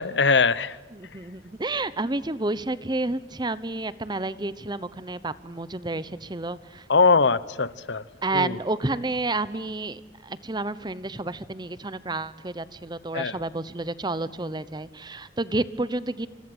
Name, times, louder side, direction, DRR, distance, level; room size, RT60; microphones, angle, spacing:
voice 1, 0.0-0.8 6.9-8.0 8.3-8.6 13.1-13.4, left 4 dB, 90° left, 18 dB, 1.0 m, -21 dB
voice 2, 0.9-6.9 8.2-16.3, right 2 dB, 25° right, 16 dB, 1.0 m, -30 dB
27.5 x 26.0 x 8.0 m, 1.2 s
head